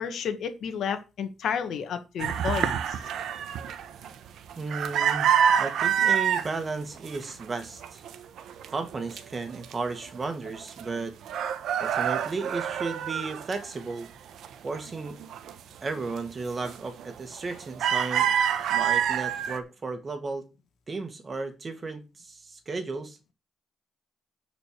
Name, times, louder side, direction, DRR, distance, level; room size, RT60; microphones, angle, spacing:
voice 1, 0.0-2.9, left 7 dB, 70° left, 1.8 m, -31 dB
sound 1, 2.2-6.5 7.0-7.5 7.8-9.2 9.6-9.7 10.0-11.0 11.3-14.0 14.4-15.5 16.0-16.2 16.6-17.0 17.4-19.6, right 8 dB, 75° right, 1.1 m, -26 dB
voice 2, 4.6-5.3 5.6-8.0 8.7-11.2 11.8-14.1 14.6-15.2 15.8-18.3 18.7-20.4 20.9-23.2, right 3 dB, 35° right, 2.1 m, -34 dB
9.6 x 5.2 x 6.6 m
cardioid pair, 90°, 0 cm